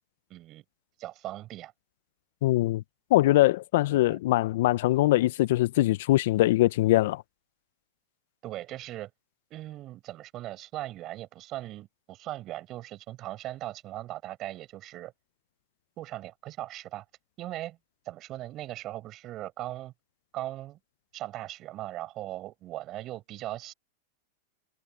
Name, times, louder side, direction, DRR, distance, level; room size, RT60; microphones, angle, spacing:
voice 1, 0.3-0.6 1.0-1.7 3.9-4.2 8.4-9.1 9.5-15.1 16.0-17.0 17.4-17.8 18.1-19.9 20.3-20.8 21.1-23.7, right 15 dB, 40° right, 7.6 m, -39 dB
voice 2, 2.4-2.8 3.1-7.2, left 16 dB, 65° left, 0.5 m, -22 dB
hypercardioid pair, 125°, 0 cm